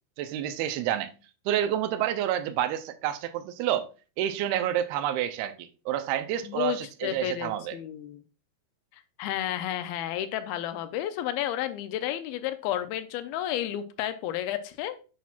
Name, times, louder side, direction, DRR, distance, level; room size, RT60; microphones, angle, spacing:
voice 1, 0.2-1.1 1.5-3.9 4.2-7.8, right 11 dB, 85° right, 2.5 m, -29 dB
voice 2, 6.4-8.2 9.2-15.0, left 12 dB, 80° left, 2.4 m, -32 dB
8.3 x 5.8 x 2.4 m
omnidirectional pair, 4.4 m